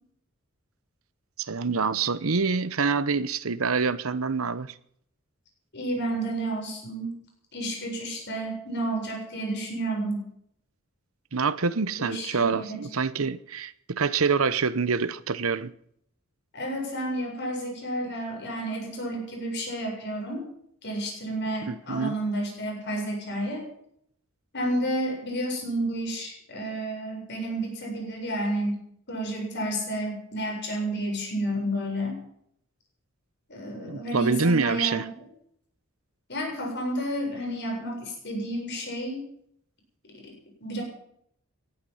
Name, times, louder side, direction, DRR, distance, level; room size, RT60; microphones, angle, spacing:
voice 1, 1.4-4.7 11.3-15.7 21.7-22.2 33.9-35.1, right 4 dB, 85° right, 0.9 m, -26 dB
voice 2, 5.7-7.2 7.5-10.3 11.9-12.8 16.5-20.5 20.8-23.6 24.5-28.8 29.1-32.2 33.5-35.1 36.3-39.2 40.1-40.3 40.6-40.8, right 1 dB, 55° left, 7.4 m, -31 dB
19.5 x 12.0 x 5.7 m
head